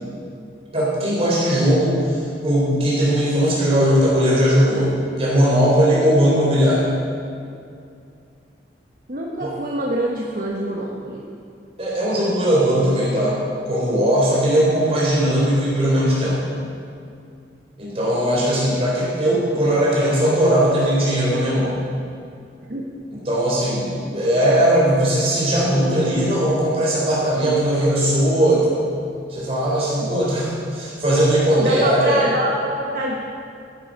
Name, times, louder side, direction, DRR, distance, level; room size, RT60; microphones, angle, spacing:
voice 1, 0.7-4.9 5.2-6.9 9.4-9.5 11.8-13.4 13.6-16.4 17.8-21.7 23.3-28.7 29.3-32.3, equal, 35° right, -6 dB, 3.7 m, -19 dB
voice 2, 9.1-11.2 22.7-22.8 31.6-33.1, right 1 dB, 50° right, -2 dB, 1.1 m, -25 dB
13.5 x 11.0 x 5.2 m, 2.5 s
head